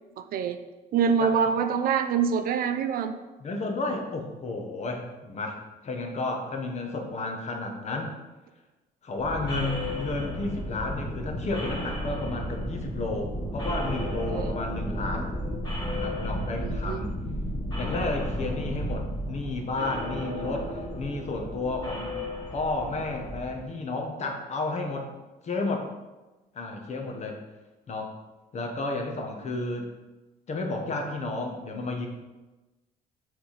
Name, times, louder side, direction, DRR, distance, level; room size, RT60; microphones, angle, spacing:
voice 1, 0.2-0.6 0.9-3.1 14.3-14.5 16.6-17.0, right 6 dB, 60° right, 9 dB, 0.5 m, -25 dB
voice 2, 3.4-8.1 9.0-15.3 15.9-17.1 17.8-22.1 22.5-25.1 25.4-25.9 26.5-27.4 27.9-28.2 28.5-29.9 30.5-32.1, left 2 dB, 40° left, 3 dB, 1.2 m, -32 dB
sound 1, 9.2-23.5, equal, 25° left, 2.1 m, -33 dB
6.0 x 3.7 x 5.0 m, 1.1 s
cardioid pair, 110°, 17 cm